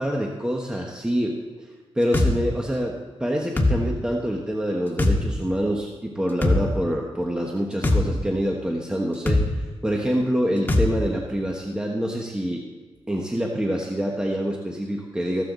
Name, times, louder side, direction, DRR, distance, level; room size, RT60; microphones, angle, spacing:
voice 1, 0.0-1.4 1.9-12.6 13.1-15.4, equal, 10° right, 0 dB, 1.4 m, -26 dB
sound 1, 2.1-2.3 3.6-3.8 5.0-5.2 6.4-6.6 7.8-8.0 9.3-9.5 10.7-10.9, left 2 dB, 20° left, 1.9 m, -19 dB
15.0 x 13.5 x 4.1 m, 1.4 s
wide cardioid pair, 95°, 11 cm